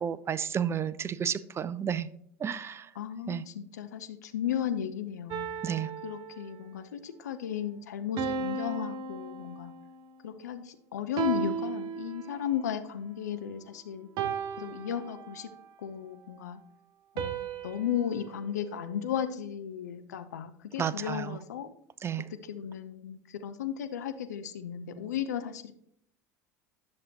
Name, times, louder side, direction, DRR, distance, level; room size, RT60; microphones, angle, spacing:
voice 1, 0.0-2.1 2.4-2.9 3.3-3.4 5.6-5.9 20.8-21.4 22.0-22.2, right 8 dB, 30° right, 16 dB, 0.6 m, -31 dB
voice 2, 3.0-5.5 6.0-9.7 10.2-14.1 14.6-15.5 15.8-16.6 17.1-21.7 22.4-25.7, left 9 dB, 85° left, 10 dB, 0.7 m, -35 dB
sound 1, 5.3-6.8 8.2-10.0 11.2-12.6 14.2-15.6 17.2-19.4, right 6 dB, 50° right, 0.9 m, -36 dB
10.5 x 6.7 x 2.9 m, 0.67 s
hypercardioid pair, 80°, 9 cm